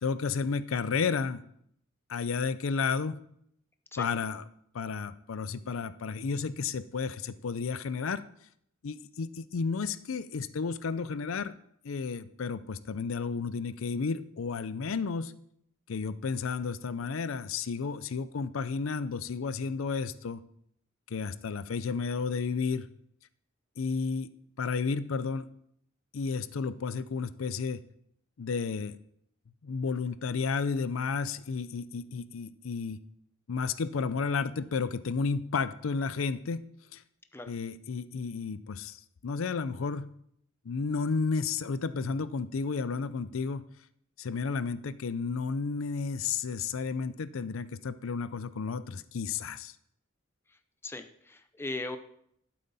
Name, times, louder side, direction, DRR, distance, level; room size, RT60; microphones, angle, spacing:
voice 1, 0.0-1.4 2.1-3.2 4.0-4.4 4.7-8.2 8.8-11.5 11.8-15.3 15.9-20.4 21.1-22.9 23.8-24.3 24.6-25.5 26.1-27.8 28.4-29.0 29.6-33.0 33.5-36.6 36.9-37.0 37.5-39.0 39.2-40.1 40.7-43.6 44.2-49.7, left 5 dB, 80° left, 15 dB, 0.5 m, -32 dB
voice 2, 50.8-52.0, left 2 dB, 10° left, 7 dB, 0.5 m, -38 dB
12.0 x 7.7 x 4.1 m, 0.70 s
head